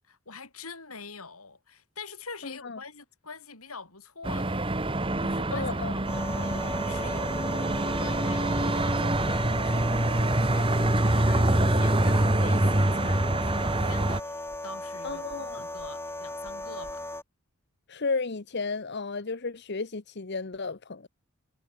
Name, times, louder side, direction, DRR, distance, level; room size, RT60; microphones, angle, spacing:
voice 1, 0.1-4.7 5.2-5.7 5.9-17.0, left 4 dB, 90° left, 7.1 m, -45 dB
voice 2, 2.4-2.8 5.5-5.9 15.0-15.6 17.9-21.1, left 4 dB, 50° left, 0.9 m, -33 dB
sound 1, 4.2-14.2, right 1 dB, 25° right, 1.4 m, -25 dB
sound 2, 6.0-17.2, left 1 dB, 10° left, 6.5 m, -37 dB
head